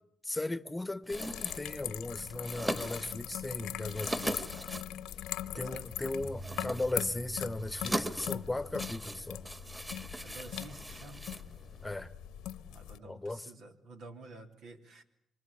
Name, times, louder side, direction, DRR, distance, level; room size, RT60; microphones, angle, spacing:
voice 1, 0.2-4.5 5.5-9.4 11.8-12.1 13.0-13.5, left 2 dB, 15° left, 1.1 m, -37 dB
sound 1, 1.0-12.0, right 1 dB, 10° right, 1.9 m, -41 dB
sound 2, 1.1-13.0, left 12 dB, 85° left, 1.1 m, -41 dB
voice 2, 5.1-5.9 10.2-11.2 12.7-15.0, right 3 dB, 80° right, 3.5 m, -50 dB
Bass guitar, 6.2-12.5, right 4 dB, 50° right, 4.1 m, -51 dB
26.0 x 24.5 x 8.7 m
supercardioid pair, 60°, 0 cm